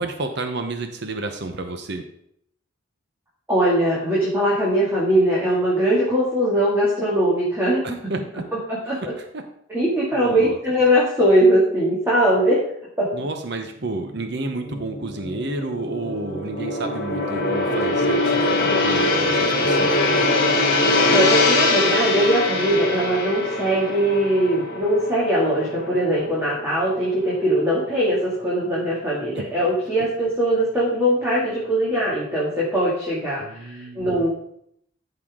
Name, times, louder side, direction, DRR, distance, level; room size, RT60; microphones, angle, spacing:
voice 1, 0.0-2.0 7.8-8.4 9.0-9.1 9.3-9.4 10.1-10.6 13.1-20.2 29.4-29.5 33.4-34.3, right 2 dB, 60° right, 6 dB, 0.9 m, -31 dB
voice 2, 3.5-7.8 8.7-9.0 9.7-12.6 13.0-13.1 21.1-34.3, right 1 dB, 10° right, -7 dB, 2.4 m, -21 dB
Gong, 14.2-26.6 27.0-27.2, left 2 dB, 50° left, 2.3 m, -22 dB
13.5 x 5.9 x 3.7 m, 0.71 s
head